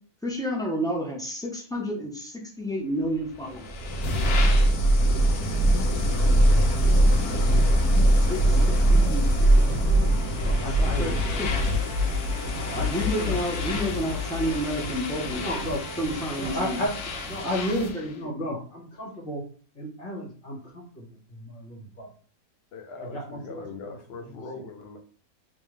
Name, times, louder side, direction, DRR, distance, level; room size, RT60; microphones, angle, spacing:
voice 1, 0.2-3.7 8.3-9.3 10.8-11.5 12.9-15.4 16.0-16.8 17.9-18.1, equal, 5° left, -1 dB, 0.4 m, -30 dB
sound 1, 3.4-18.0, equal, 85° left, 1.3 m, -23 dB
voice 2, 6.7-7.1 8.5-8.7 10.3-11.2 11.6-11.7 12.5-13.4 15.3-15.8 16.3-16.9 17.2-19.4 19.7-21.0 21.3-22.1 23.1-23.9 24.2-24.3, equal, 35° left, -2 dB, 1.5 m, -33 dB
sound 2, 9.3-16.9, right 4 dB, 70° right, 1.0 m, -39 dB
voice 3, 22.7-25.0, left 4 dB, 50° left, 4 dB, 0.8 m, -40 dB
3.6 x 3.0 x 3.2 m, 0.42 s
omnidirectional pair, 1.6 m